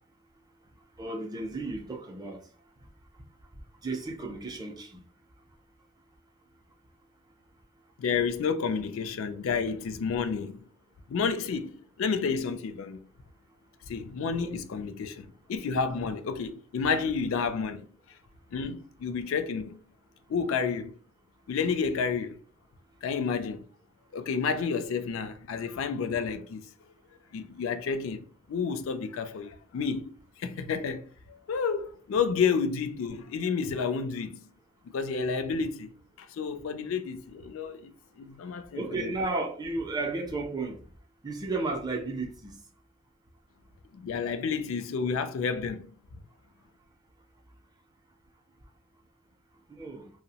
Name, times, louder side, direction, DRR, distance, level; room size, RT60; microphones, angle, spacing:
voice 1, 1.0-2.5 3.8-5.0 14.4-14.6 38.7-40.8 41.2-42.6 49.7-50.1, right 3 dB, 20° right, 0.4 m, -33 dB
voice 2, 8.0-10.6 11.1-13.1 13.9-17.9 18.5-19.8 20.3-21.0 21.5-22.4 23.0-23.6 24.1-26.6 27.3-34.5 34.9-35.9 36.2-39.1 43.9-45.9, left 5 dB, 70° left, 0.3 m, -30 dB
2.6 x 2.0 x 2.7 m
head